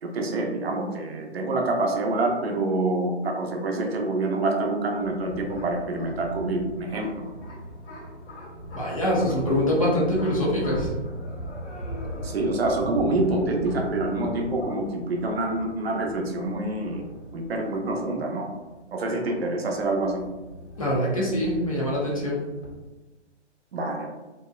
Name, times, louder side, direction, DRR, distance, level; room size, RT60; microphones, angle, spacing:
voice 1, 0.0-7.3 12.2-17.0 17.3-18.5 18.9-20.2 23.7-24.1, right 2 dB, 60° right, 1 dB, 0.6 m, -26 dB
sound 1, 4.6-22.7, equal, 85° left, 1.1 m, -39 dB
voice 2, 8.7-10.9 20.8-22.4, left 1 dB, 30° left, -5 dB, 0.4 m, -24 dB
2.7 x 2.0 x 2.2 m, 1.1 s
hypercardioid pair, 155°, 35 cm